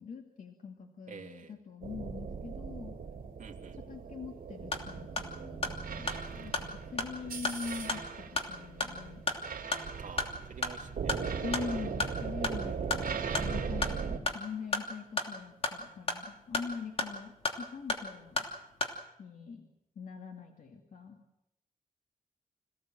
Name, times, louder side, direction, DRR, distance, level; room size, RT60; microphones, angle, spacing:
voice 1, 0.0-3.0 3.9-9.2 11.4-18.5 19.2-19.7 20.0-21.2, left 5 dB, 60° left, 2 dB, 2.3 m, -43 dB
voice 2, 1.1-1.5 3.4-3.8 10.0-11.2, right 6 dB, 60° right, 3 dB, 2.7 m, -48 dB
sound 1, 1.8-14.2, right 5 dB, 80° right, 3.3 m, -38 dB
sound 2, 4.5-19.0, left 3 dB, 40° left, 2.9 m, -37 dB
27.0 x 17.0 x 7.7 m, 0.86 s
wide cardioid pair, 145°, 15 cm